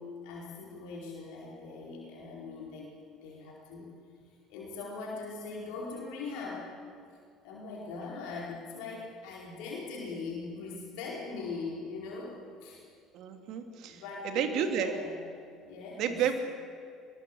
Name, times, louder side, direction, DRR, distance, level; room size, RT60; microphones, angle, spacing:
voice 1, 0.0-2.9 3.2-3.9 4.5-6.7 7.4-12.8 13.8-15.2 15.6-16.2, left 4 dB, 65° left, -3 dB, 4.7 m, -41 dB
voice 2, 13.1-14.9 16.0-16.3, right 8 dB, 60° right, 6 dB, 2.8 m, -31 dB
23.5 x 21.0 x 8.0 m, 2.3 s
hypercardioid pair, 60°, 0 cm